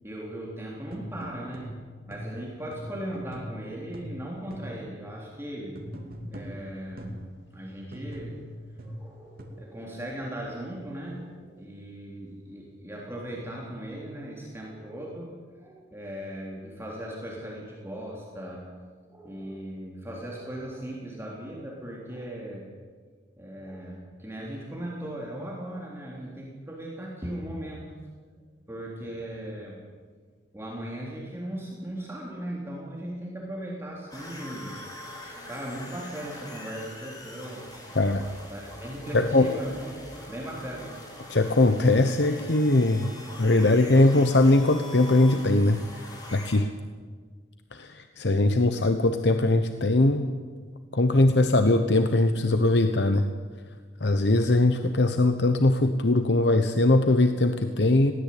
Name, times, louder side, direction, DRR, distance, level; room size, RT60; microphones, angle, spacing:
voice 1, 0.0-1.7 2.1-5.8 6.3-7.2 7.5-8.4 8.8-15.3 15.6-18.7 19.1-22.7 23.4-27.9 28.7-29.8 30.5-34.8 35.5-37.7 38.5-39.9 40.3-40.9, right 1 dB, 15° right, -3 dB, 3.5 m, -38 dB
sound 1, 0.9-5.0 5.8-7.3 7.9-9.4, equal, 55° right, 2.7 m, -41 dB
sound 2, 34.1-46.6, left 1 dB, 20° left, 5.0 m, -43 dB
voice 2, 37.9-38.3 39.1-39.6 41.3-43.1 43.4-46.7 47.7-50.3 50.9-53.3 54.0-58.1, left 2 dB, 70° left, 8 dB, 1.0 m, -21 dB
21.0 x 16.5 x 8.6 m, 1.5 s
head